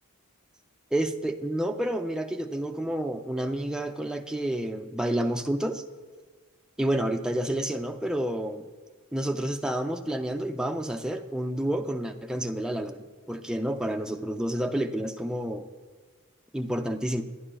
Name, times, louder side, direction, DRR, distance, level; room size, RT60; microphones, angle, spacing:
voice 1, 0.9-5.8 6.8-8.6 9.1-15.7 16.5-17.2, right 1 dB, 5° right, 3 dB, 0.3 m, -29 dB
11.0 x 10.0 x 2.2 m, 1.5 s
head